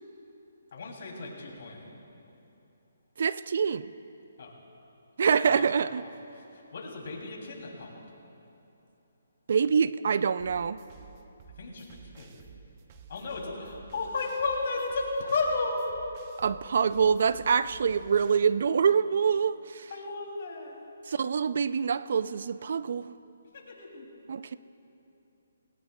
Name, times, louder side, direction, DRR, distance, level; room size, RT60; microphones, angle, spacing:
voice 1, 0.7-1.9 4.4-4.5 5.5-8.1 11.6-12.4 13.1-15.8 19.9-20.8 23.5-24.1, left 3 dB, 55° left, 0 dB, 2.9 m, -34 dB
voice 2, 3.2-3.9 5.2-6.0 9.5-10.8 16.4-19.9 21.1-23.1 24.3-24.6, right 6 dB, 60° right, 16 dB, 0.4 m, -25 dB
sound 1, 10.4-18.4, right 5 dB, 30° right, 0.8 m, -52 dB
19.5 x 17.0 x 2.3 m, 2.9 s
hypercardioid pair, 160°, 0 cm